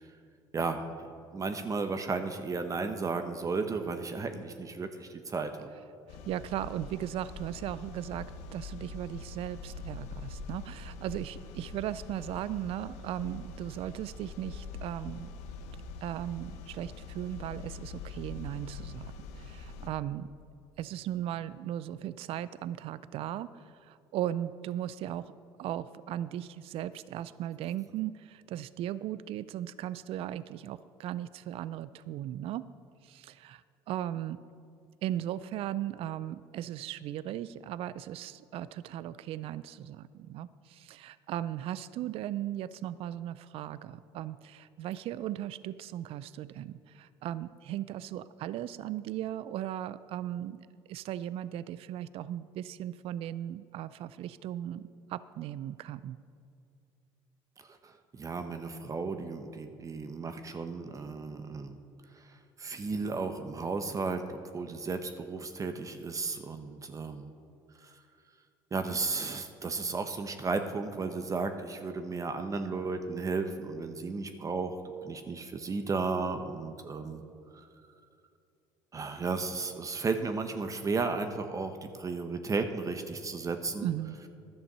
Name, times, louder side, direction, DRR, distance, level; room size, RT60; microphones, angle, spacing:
voice 1, 0.5-0.9 1.3-5.7 57.6-61.8 62.1-67.3 67.8-68.0 68.7-77.2 77.5-77.7 78.9-83.9, right 4 dB, 30° right, 7 dB, 0.8 m, -34 dB
sound 1, 6.1-19.9, left 4 dB, 80° left, 0.8 m, -44 dB
voice 2, 6.3-15.3 16.0-20.3 20.8-25.3 25.6-32.7 33.0-34.4 35.0-56.2 83.8-84.2, right 12 dB, 60° right, 16 dB, 0.4 m, -37 dB
11.5 x 7.0 x 6.7 m, 2.5 s
supercardioid pair, 85°, 11 cm